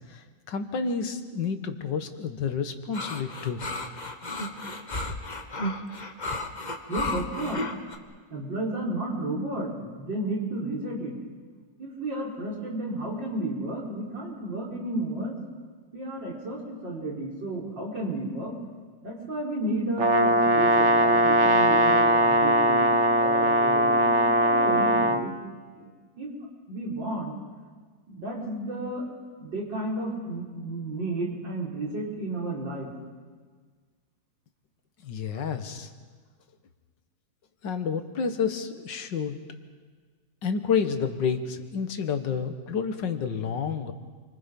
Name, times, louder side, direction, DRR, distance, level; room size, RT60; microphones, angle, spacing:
voice 1, 0.1-3.6 35.0-35.9 37.6-39.4 40.4-43.9, left 6 dB, 80° left, 8 dB, 2.1 m, -29 dB
sound 1, 2.9-8.0, left 2 dB, 25° left, 1.4 m, -33 dB
voice 2, 6.9-7.6 8.3-11.2 11.8-15.4 15.9-18.6 19.0-22.9 23.2-25.3 25.8-25.9 26.2-26.3 26.7-27.4 28.1-29.1 29.4-32.9, right 1 dB, 90° right, -2 dB, 5.1 m, -32 dB
Brass instrument, 20.0-25.2, right 1 dB, 45° right, 1.5 m, -20 dB
29.0 x 24.5 x 5.3 m, 1.5 s
omnidirectional pair, 1.9 m